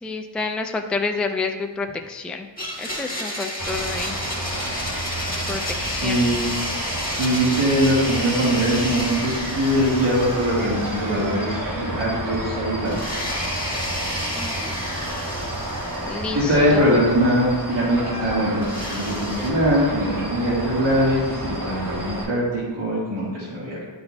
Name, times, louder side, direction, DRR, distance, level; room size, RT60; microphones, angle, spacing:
voice 1, 0.0-2.5 2.8-4.2 5.5-6.4 14.3-14.7 16.1-17.0, left 4 dB, ahead, 4 dB, 0.3 m, -29 dB
Domestic sounds home sounds, 2.6-11.7 12.0-12.1 12.9-16.8 18.6-19.5, left 1 dB, 20° left, 1.5 m, -31 dB
sound 1, 3.6-22.2, right 1 dB, 45° right, 1.4 m, -31 dB
voice 2, 5.7-6.4 7.2-13.3 16.3-23.8, equal, 65° right, -8 dB, 1.7 m, -22 dB
10.5 x 4.1 x 2.3 m, 1.3 s
wide cardioid pair, 55°, 46 cm